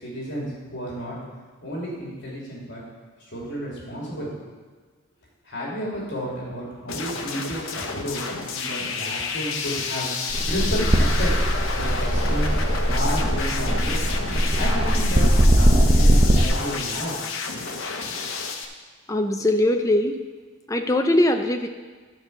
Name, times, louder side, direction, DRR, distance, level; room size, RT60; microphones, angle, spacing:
voice 1, 0.0-1.2 1.6-2.8 3.3-4.3 5.5-8.3 8.5-10.1 10.5-14.0 14.6-15.2 15.5-17.2, equal, 60° left, -5 dB, 2.9 m, -31 dB
sound 1, 6.9-18.7, left 4 dB, 85° left, 0.9 m, -30 dB
sound 2, 10.3-16.4, equal, 30° right, 0.8 m, -20 dB
voice 2, 19.1-20.2 20.7-21.7, left 1 dB, 15° left, 5 dB, 0.5 m, -21 dB
11.5 x 4.4 x 7.1 m, 1.5 s
head